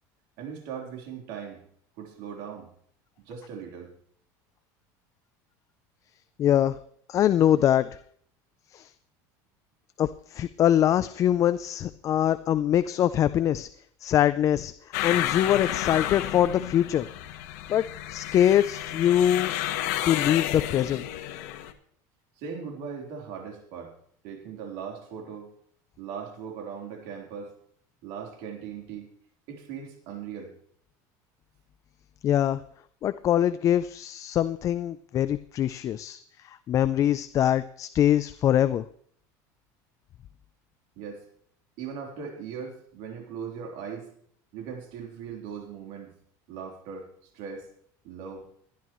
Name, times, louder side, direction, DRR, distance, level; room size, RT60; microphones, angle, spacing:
voice 1, 0.4-1.6 2.0-2.7 3.2-3.9 22.4-23.9 24.2-25.5 26.0-27.5 28.0-29.1 29.5-30.6 41.0-41.2 41.8-44.1 44.5-46.1 46.5-47.1 47.3-47.7 48.0-48.5, right 6 dB, 70° right, 1 dB, 3.7 m, -39 dB
voice 2, 6.4-6.8 7.1-8.0 8.7-8.9 10.0-13.7 14.0-14.7 15.0-17.1 17.7-17.8 18.1-19.5 20.1-21.0 32.2-32.6 33.0-38.8, left 11 dB, 35° left, 13 dB, 0.5 m, -23 dB
sound 1, 14.9-21.7, left 13 dB, 80° left, 1.3 m, -31 dB
20.5 x 11.0 x 3.1 m, 0.62 s
supercardioid pair, 130°, 9 cm